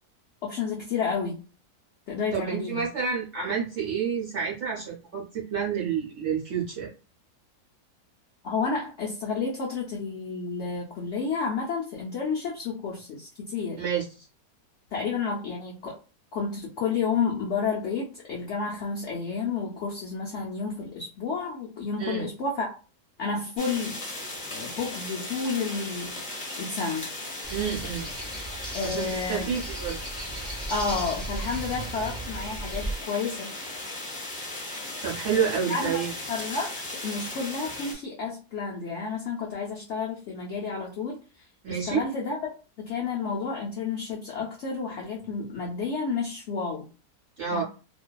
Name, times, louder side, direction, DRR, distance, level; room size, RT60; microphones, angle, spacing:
voice 1, 0.4-1.4 2.1-2.9 8.4-13.8 14.9-16.0 16.3-22.7 23.2-24.0 24.5-26.2 26.6-27.1 28.7-29.6 30.7-33.5 35.3-36.0 36.3-36.7 37.0-42.4 42.8-46.9 47.5-47.6, left 5 dB, 75° left, -2 dB, 0.6 m, -31 dB
voice 2, 2.3-6.9 13.8-14.0 22.0-22.3 27.5-28.1 28.8-30.0 35.0-36.1 41.6-42.0 47.4-47.6, right 7 dB, 65° right, -4 dB, 0.7 m, -29 dB
sound 1, 23.6-37.9, left 2 dB, 35° left, 0.7 m, -37 dB
sound 2, 27.4-33.0, right 2 dB, ahead, 0.3 m, -36 dB
2.5 x 2.2 x 2.2 m, 0.35 s
omnidirectional pair, 1.7 m